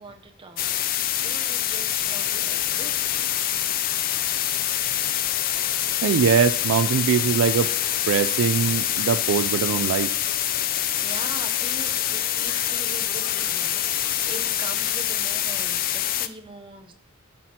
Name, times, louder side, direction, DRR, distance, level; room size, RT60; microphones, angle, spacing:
voice 1, 0.0-3.3 11.0-16.9, right 3 dB, 25° right, 5 dB, 0.7 m, -42 dB
sound 1, 0.6-16.3, left 11 dB, 45° left, 0.4 m, -25 dB
sound 2, 2.0-14.5, left 4 dB, 80° left, 0.7 m, -46 dB
voice 2, 6.0-7.8 8.1-10.1, right 7 dB, 70° right, 13 dB, 0.3 m, -22 dB
13.0 x 5.9 x 2.8 m, 0.65 s
head